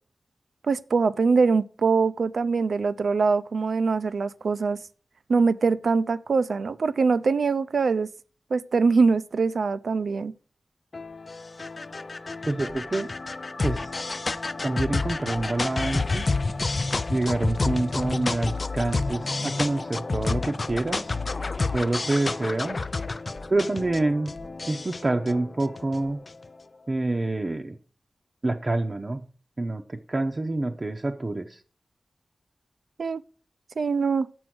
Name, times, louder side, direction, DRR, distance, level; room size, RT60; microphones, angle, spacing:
voice 1, 0.6-4.8 5.3-8.1 8.5-10.3 33.0-33.2 33.8-34.3, right 4 dB, 80° right, 0.4 m, -23 dB
sound 1, 10.9-26.5, left 3 dB, 40° left, 0.4 m, -30 dB
voice 2, 12.5-13.1 13.6-13.9 14.6-16.3 17.1-21.2 21.7-22.8 23.5-24.3 24.7-26.2 26.9-27.8 28.4-29.2 29.6-31.6, right 2 dB, 35° right, 0.6 m, -27 dB
6.3 x 6.1 x 6.0 m
wide cardioid pair, 105°, 0 cm